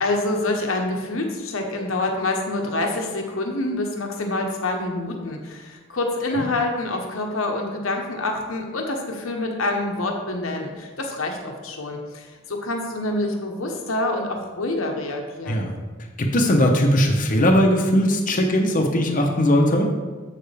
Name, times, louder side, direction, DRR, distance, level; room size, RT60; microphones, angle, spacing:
voice 1, 0.0-15.7, left 2 dB, 85° left, 2 dB, 1.1 m, -26 dB
voice 2, 16.2-19.9, equal, 40° left, 2 dB, 0.9 m, -19 dB
7.8 x 6.7 x 3.4 m, 1.4 s
head